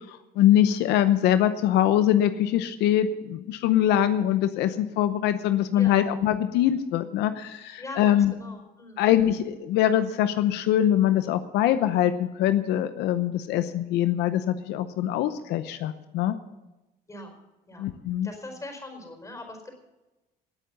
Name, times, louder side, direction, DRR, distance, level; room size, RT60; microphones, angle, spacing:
voice 1, 0.1-8.3 9.0-16.4 17.8-18.3, left 11 dB, 85° left, 11 dB, 0.8 m, -23 dB
voice 2, 5.7-6.1 7.8-9.1 17.1-17.3 17.7-17.9 18.2-19.8, left 2 dB, 20° left, 4 dB, 4.6 m, -41 dB
18.5 x 8.7 x 6.9 m, 1.0 s
cardioid pair, 110°, 17 cm